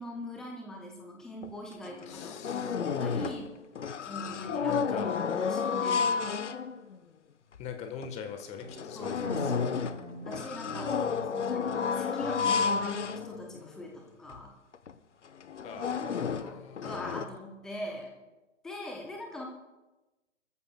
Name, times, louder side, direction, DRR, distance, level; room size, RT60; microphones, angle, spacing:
voice 1, 0.0-3.5 4.1-6.4 9.0-9.7 10.2-11.0 11.3-14.5 16.3-18.1 18.6-19.5, left 1 dB, ahead, 1 dB, 0.4 m, -41 dB
sound 1, 1.4-1.5 1.8-3.5 3.8-7.0 7.5-7.6 8.0-8.1 8.6-13.8 14.3-14.4 14.7-14.9 15.4-17.2, left 6 dB, 70° left, 0.9 m, -31 dB
voice 2, 2.1-2.8 4.2-5.2 7.6-9.8 10.9-11.2 15.6-17.3, left 7 dB, 15° left, 6 dB, 1.2 m, -42 dB
sound 2, 8.6-14.2, right 2 dB, 90° right, 3.7 m, -45 dB
28.0 x 14.0 x 2.2 m, 1.1 s
figure-of-eight pair, 125°, 38 cm